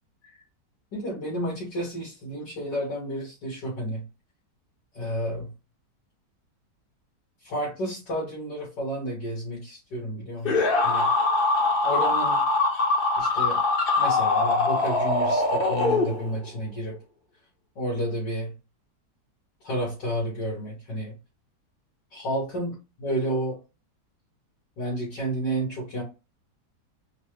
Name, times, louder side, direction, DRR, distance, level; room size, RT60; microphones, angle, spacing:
voice 1, 0.9-4.0 4.9-5.5 7.4-11.1 11.8-12.4 13.2-13.6 14.0-17.0 17.8-18.5 19.6-21.2 22.1-23.6 24.8-26.0, equal, 90° left, -6 dB, 2.4 m, -31 dB
sound 1, 10.4-16.5, left 3 dB, 40° left, 0.9 m, -23 dB
4.5 x 2.3 x 3.1 m, 0.29 s
omnidirectional pair, 1.8 m